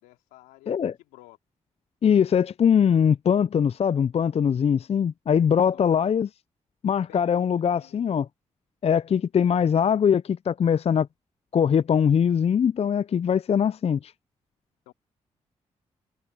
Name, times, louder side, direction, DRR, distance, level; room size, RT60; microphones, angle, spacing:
voice 1, 0.0-0.7 1.0-1.4 5.7-6.1 7.1-8.0 14.9-15.0, left 18 dB, 90° left, 3.6 m, -52 dB
voice 2, 2.0-6.3 6.8-8.3 8.8-11.1 11.5-14.1, left 7 dB, 45° left, 0.5 m, -22 dB
hypercardioid pair, 40°, 14 cm